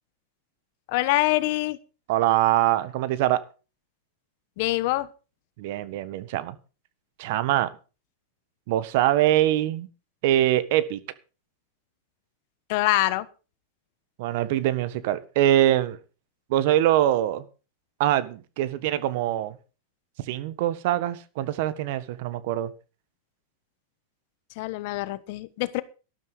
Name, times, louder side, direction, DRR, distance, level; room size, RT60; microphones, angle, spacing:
voice 1, 0.9-1.8 4.6-5.1 12.7-13.2 24.6-25.8, left 18 dB, 60° left, 1.3 m, -24 dB
voice 2, 2.1-3.4 5.6-6.5 7.2-7.7 8.7-9.9 10.2-11.0 14.2-16.0 16.5-17.4 18.0-19.6 20.3-22.7, right 13 dB, 60° right, 1.5 m, -23 dB
12.5 x 12.0 x 5.0 m
supercardioid pair, 130°, 0 cm